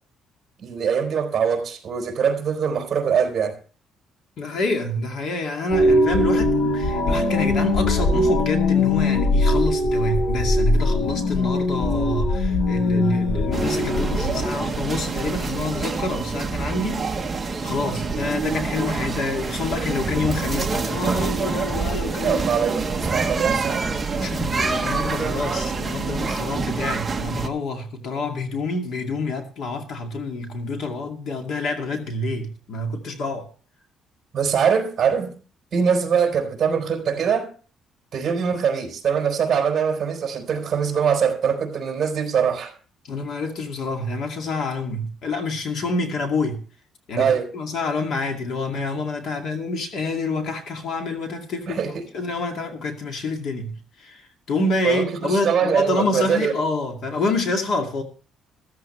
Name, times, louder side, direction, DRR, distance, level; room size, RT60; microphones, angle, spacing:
voice 1, 0.6-3.6 17.7-18.0 22.2-23.8 34.3-35.4 35.7-37.5 38.1-42.7 47.2-47.5 51.7-51.9 54.8-56.5, right 7 dB, 35° right, 3.9 m, -22 dB
voice 2, 4.4-17.2 17.6-22.5 24.1-33.5 43.0-46.6 47.1-51.8 52.1-58.0, left 2 dB, 55° left, 2.4 m, -27 dB
sound 1, 5.7-14.5, left 2 dB, 80° left, 3.4 m, -21 dB
sound 2, 13.5-27.5, right 4 dB, 15° right, 1.1 m, -26 dB
14.5 x 14.5 x 3.2 m
cardioid pair, 160°, 0 cm